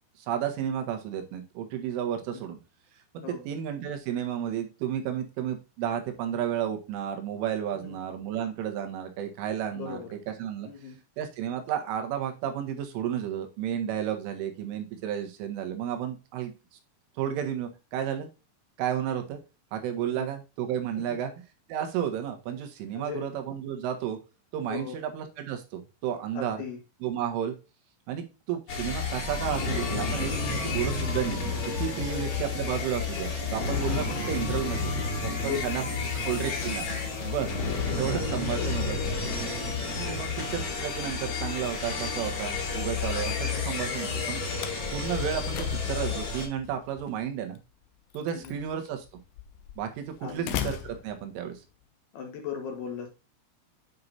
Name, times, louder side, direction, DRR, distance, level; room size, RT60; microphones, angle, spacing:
voice 1, 0.2-2.6 3.1-10.0 10.3-10.7 11.2-16.5 17.2-18.3 18.8-19.4 19.7-21.3 21.7-24.2 24.5-26.6 27.0-27.5 28.1-31.4 31.8-34.9 35.2-35.8 36.2-36.9 37.2-37.5 37.9-39.0 40.0-44.5 44.9-47.6 48.1-49.1 49.8-51.6, right 9 dB, 75° right, 6 dB, 3.9 m, -32 dB
voice 2, 9.8-10.1 10.6-11.0 20.1-20.3 21.1-21.2 22.9-23.2 24.7-25.0 26.3-26.8 35.4-35.6 36.0-36.1 38.5-38.6 40.1-40.5 48.3-48.6 50.2-50.6 52.1-53.1, left 7 dB, 65° left, 3 dB, 2.9 m, -38 dB
sound 1, 28.7-46.5, left 4 dB, 45° left, 3.9 m, -31 dB
Slam, 41.6-51.8, left 10 dB, 80° left, 2.4 m, -42 dB
9.6 x 5.8 x 2.7 m, 0.28 s
omnidirectional pair, 5.8 m